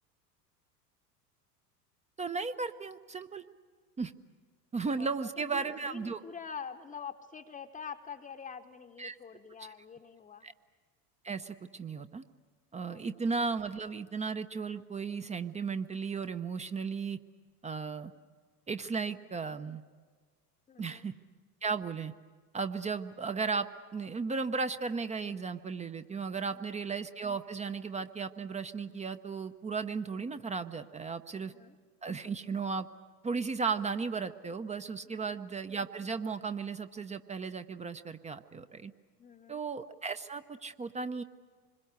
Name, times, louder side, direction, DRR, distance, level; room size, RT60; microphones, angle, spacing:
voice 1, 2.2-3.4 4.0-4.1 4.7-6.2 9.0-9.2 9.6-9.7 10.4-10.5 11.2-12.2 12.7-17.2 17.6-18.1 18.7-19.8 20.8-21.1 21.6-22.1 22.5-31.5 32.0-32.9 33.2-38.9 39.5-41.2, right 5 dB, 15° right, 10 dB, 0.7 m, -35 dB
voice 2, 5.0-10.5 12.8-13.0 20.7-21.1 26.4-26.5 31.3-31.8 35.1-35.4 39.2-39.6, left 6 dB, 15° left, 4 dB, 1.0 m, -46 dB
26.5 x 21.5 x 8.2 m, 1.5 s
figure-of-eight pair, 80°, 48 cm